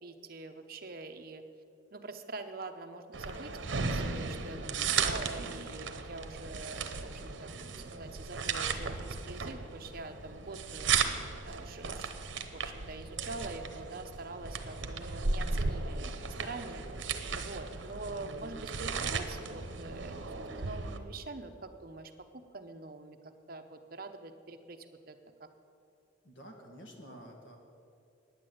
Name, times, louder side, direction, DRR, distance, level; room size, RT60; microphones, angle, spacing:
voice 1, 0.0-1.4 1.9-7.5 7.9-11.1 11.4-12.2 12.5-25.5, right 3 dB, 50° right, 6 dB, 0.8 m, -45 dB
sound 1, 3.1-21.0, right 5 dB, 80° right, 0.9 m, -36 dB
voice 2, 26.2-27.6, equal, 85° left, 2 dB, 2.0 m, -50 dB
9.6 x 9.5 x 7.9 m, 2.4 s
head